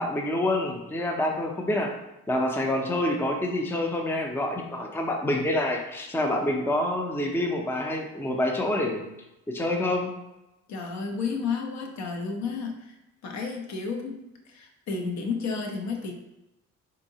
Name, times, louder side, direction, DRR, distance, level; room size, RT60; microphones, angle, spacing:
voice 1, 0.0-1.9 2.3-9.1 9.5-10.1, left 1 dB, 10° left, 2 dB, 0.5 m, -27 dB
voice 2, 10.7-13.0 13.2-16.1, left 4 dB, 65° left, 2 dB, 0.7 m, -32 dB
3.9 x 2.7 x 2.7 m, 0.94 s
cardioid pair, 90°, 30 cm